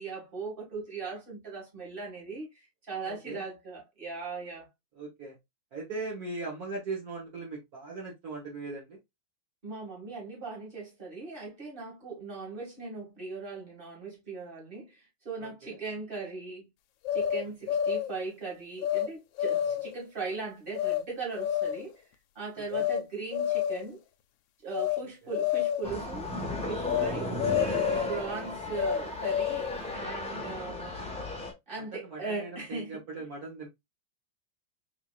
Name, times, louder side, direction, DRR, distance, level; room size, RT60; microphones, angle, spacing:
voice 1, 0.0-4.7 9.6-16.7 17.1-22.0 22.4-24.0 24.6-26.3 26.7-27.3 28.1-31.0 31.7-33.0, right 4 dB, 25° right, 2.2 m, -39 dB
voice 2, 3.0-3.4 5.0-5.4 5.7-9.0 15.4-15.8 17.4-17.7 22.7-22.9 25.2-25.3 31.8-33.7, right 3 dB, 50° right, 1.8 m, -40 dB
sound 1, 17.0-18.2 18.8-19.1 19.4-20.0 20.8-21.0 21.4-21.9 22.7-23.0 23.3-24.0 24.7-25.0 25.3-25.9 26.9-27.1 27.4-28.2 28.7-29.8, left 10 dB, 80° left, 1.3 m, -29 dB
sound 2, 25.8-31.5, left 1 dB, 5° left, 0.9 m, -35 dB
4.2 x 3.9 x 2.4 m
omnidirectional pair, 2.1 m